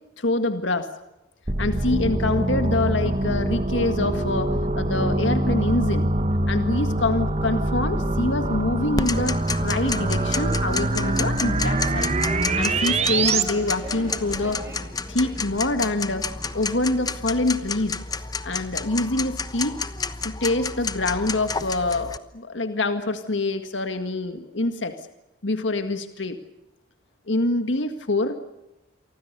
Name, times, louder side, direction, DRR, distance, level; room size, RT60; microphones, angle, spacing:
voice 1, 0.2-0.9 1.6-6.1 6.5-12.2 12.5-14.7 15.1-16.2 16.5-18.0 18.4-19.8 20.2-24.9 25.4-26.4 27.3-28.4, left 2 dB, 75° left, 8 dB, 1.9 m, -25 dB
sound 1, 1.5-13.4, right 2 dB, 35° right, 1.4 m, -24 dB
Tick-tock, 9.0-22.2, left 4 dB, 20° left, 1.0 m, -31 dB
sound 2, 10.1-15.4, left 1 dB, 15° right, 6.5 m, -40 dB
28.5 x 24.5 x 6.8 m, 0.92 s
head